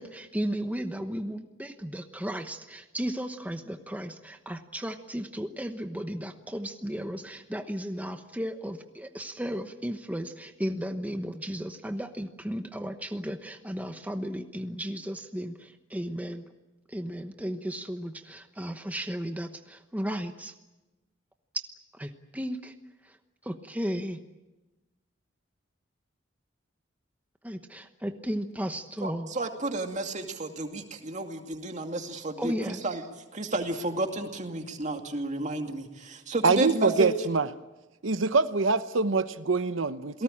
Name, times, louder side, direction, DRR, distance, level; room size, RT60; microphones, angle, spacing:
voice 1, 0.0-16.4 16.9-20.5 21.9-22.7 23.0-23.2 23.4-24.2 27.4-29.3 32.4-32.8, equal, 10° right, 1.0 m, -35 dB
voice 2, 29.0-33.0 33.3-37.1 40.1-40.2, right 2 dB, 40° right, 2.4 m, -32 dB
voice 3, 36.4-37.5 38.0-40.1, right 4 dB, 90° right, 0.9 m, -24 dB
28.5 x 18.5 x 8.8 m
head